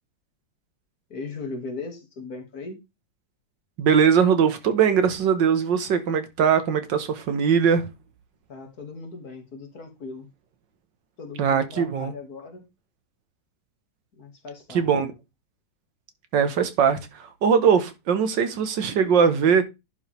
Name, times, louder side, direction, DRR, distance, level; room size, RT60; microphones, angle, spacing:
voice 1, 1.1-2.8 8.5-10.3 11.2-12.6 14.2-15.1, left 3 dB, 55° left, 2.5 m, -38 dB
voice 2, 3.8-7.9 11.4-12.1 14.7-15.1 16.3-19.6, right 7 dB, 85° right, 1.9 m, -21 dB
11.0 x 5.5 x 3.4 m
omnidirectional pair, 1.9 m